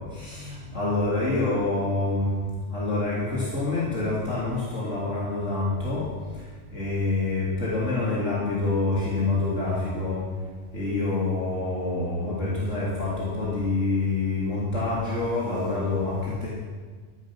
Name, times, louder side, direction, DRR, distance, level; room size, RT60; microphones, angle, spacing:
voice 1, 0.1-2.3 2.7-6.0 6.7-10.2 10.7-16.5, left 2 dB, 90° left, -7 dB, 3.5 m, -26 dB
14.5 x 11.0 x 6.1 m, 1.5 s
omnidirectional pair, 1.2 m